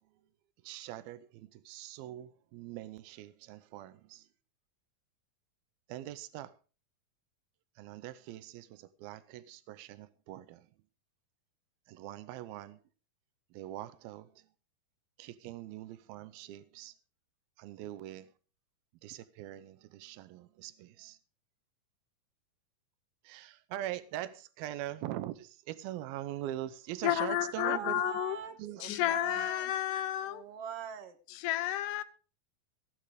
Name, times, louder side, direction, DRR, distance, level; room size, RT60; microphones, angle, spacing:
voice 1, 0.6-4.3 5.9-6.5 7.8-10.7 11.9-12.8 13.5-14.4 15.2-16.9 17.6-18.3 19.0-21.2 23.2-28.0 28.6-29.5, right 13 dB, 90° right, 2.7 m, -43 dB
voice 2, 27.0-28.4 28.8-30.4 31.3-32.0, left 13 dB, 75° left, 2.0 m, -31 dB
voice 3, 27.6-29.7 30.2-31.2, right 7 dB, 55° right, 2.0 m, -42 dB
15.5 x 10.5 x 4.9 m
omnidirectional pair, 4.2 m